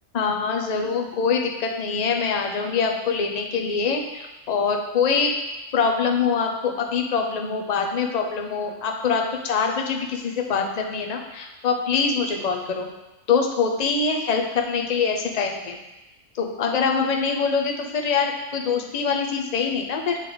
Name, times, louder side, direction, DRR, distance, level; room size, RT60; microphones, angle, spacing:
voice 1, 0.1-5.3 5.7-12.9 13.3-15.8 16.3-20.2, left 5 dB, 40° left, 2 dB, 0.7 m, -24 dB
9.0 x 3.4 x 3.9 m, 1.0 s
omnidirectional pair, 1.2 m